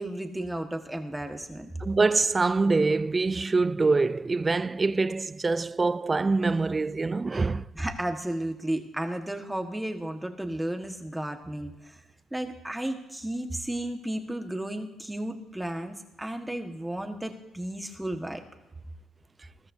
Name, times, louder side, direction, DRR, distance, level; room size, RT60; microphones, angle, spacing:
voice 1, 0.0-1.7 7.7-12.0 12.3-18.4, right 1 dB, 10° right, 1.5 m, -33 dB
voice 2, 1.8-7.7, right 3 dB, 25° right, 0.3 m, -25 dB
20.5 x 14.0 x 2.7 m
cardioid pair, 95°, 0 cm